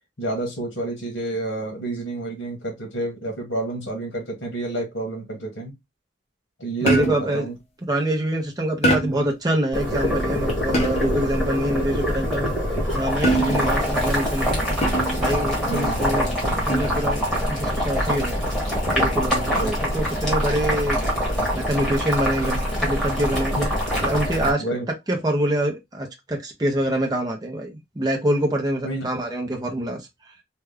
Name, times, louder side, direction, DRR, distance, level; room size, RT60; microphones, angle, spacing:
voice 1, 0.2-5.7 6.6-7.5 13.5-13.7 15.7-16.0 16.4-16.6 19.5-19.8 23.5-24.0 24.6-24.9 28.8-29.0, right 2 dB, 70° left, 1.5 m, -29 dB
voice 2, 6.8-7.5 7.9-12.5 12.9-14.6 15.2-18.4 18.9-21.0 21.5-23.5 24.0-24.6 25.1-30.1, right 1 dB, 20° right, 0.6 m, -25 dB
sound 1, 6.9-7.4 8.8-9.3 10.7-11.2 13.2-13.8 14.8-15.3 16.7-17.1, right 1 dB, 35° left, 0.8 m, -23 dB
Boiling, 9.7-24.5, equal, 5° left, 1.3 m, -24 dB
3.3 x 2.3 x 3.4 m
head